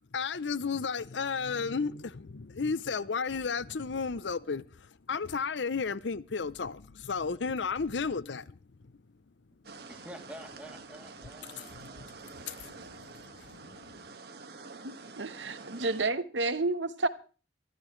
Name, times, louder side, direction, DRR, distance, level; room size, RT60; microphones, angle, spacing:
voice 1, 0.1-4.6 5.1-8.6 11.4-14.1, left 5 dB, 80° left, 0.7 m, -34 dB
sound 1, 9.6-16.1, right 3 dB, 60° right, 1.8 m, -48 dB
voice 2, 9.9-12.1, equal, 10° right, 2.9 m, -48 dB
voice 3, 14.8-17.1, right 3 dB, 90° right, 1.2 m, -31 dB
23.5 x 13.5 x 3.2 m
head